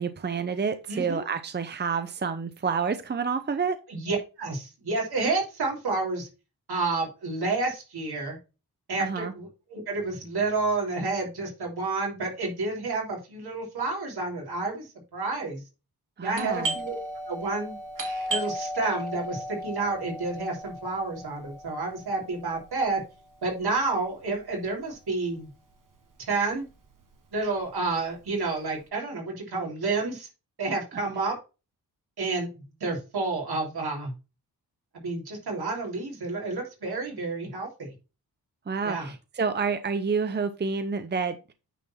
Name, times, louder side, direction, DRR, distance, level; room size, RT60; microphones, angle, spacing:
voice 1, 0.0-3.8 9.0-9.3 16.2-16.7 38.7-41.5, right 5 dB, 25° right, 10 dB, 0.7 m, -29 dB
voice 2, 0.9-1.2 3.9-6.3 6.7-8.4 8.9-15.6 16.2-17.0 17.3-17.8 18.3-23.0 23.4-25.5 26.2-26.6 27.3-30.3 30.6-31.4 32.2-34.1 34.9-37.9 38.8-39.1, right 3 dB, 75° right, 0 dB, 3.3 m, -30 dB
Doorbell, 16.3-25.7 26.0-26.1 26.7-27.0 27.4-28.7, right 1 dB, 55° right, 1.5 m, -36 dB
9.2 x 4.2 x 4.3 m, 0.30 s
cardioid pair, 90°, 38 cm